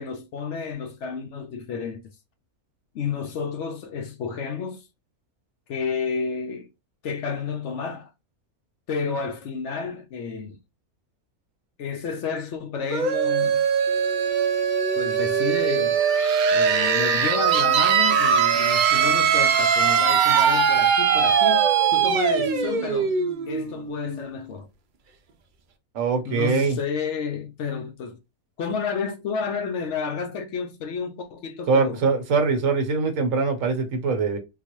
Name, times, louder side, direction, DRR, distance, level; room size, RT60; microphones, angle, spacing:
voice 1, 0.0-2.0 2.9-4.9 5.7-6.7 7.0-8.1 8.9-10.6 11.8-13.7 15.0-16.0 16.5-23.1 23.5-24.7 26.2-28.2 28.6-32.0, left 5 dB, 65° left, 0.7 m, -31 dB
sound 1, 12.9-24.4, right 7 dB, 90° right, 0.4 m, -21 dB
voice 2, 25.9-26.8 31.7-34.4, right 4 dB, 65° right, 1.2 m, -22 dB
3.8 x 2.3 x 3.0 m
omnidirectional pair, 1.5 m